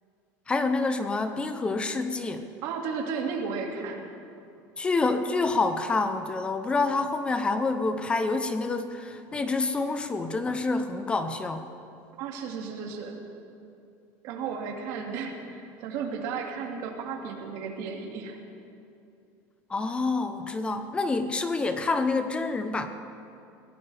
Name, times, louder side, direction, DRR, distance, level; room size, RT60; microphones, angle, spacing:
voice 1, 0.5-2.5 4.8-11.6 19.7-22.9, left 3 dB, 15° left, 9 dB, 0.7 m, -27 dB
voice 2, 2.6-4.0 12.2-13.2 14.2-18.4, right 5 dB, 55° right, 1 dB, 2.3 m, -34 dB
23.0 x 16.5 x 3.5 m, 2.6 s
cardioid pair, 165°, 8 cm